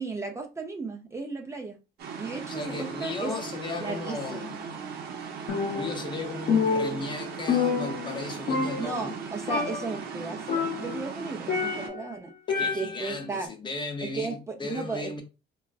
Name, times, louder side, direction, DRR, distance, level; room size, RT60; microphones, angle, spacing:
voice 1, 0.0-1.8 2.2-3.3 3.8-4.4 8.8-12.3 12.6-13.5 14.1-15.2, right 4 dB, 15° right, 0.5 m, -35 dB
sound 1, 2.0-11.9, right 6 dB, 65° right, 0.7 m, -38 dB
voice 2, 2.4-4.6 5.6-9.1 12.5-15.2, left 3 dB, 30° left, 0.7 m, -36 dB
Percussion, 5.5-6.2 6.5-8.2 8.5-9.2 9.5-10.0 10.5-12.1 12.5-13.2, left 5 dB, 60° left, 0.9 m, -28 dB
3.6 x 2.3 x 2.3 m
cardioid pair, 110°, 17 cm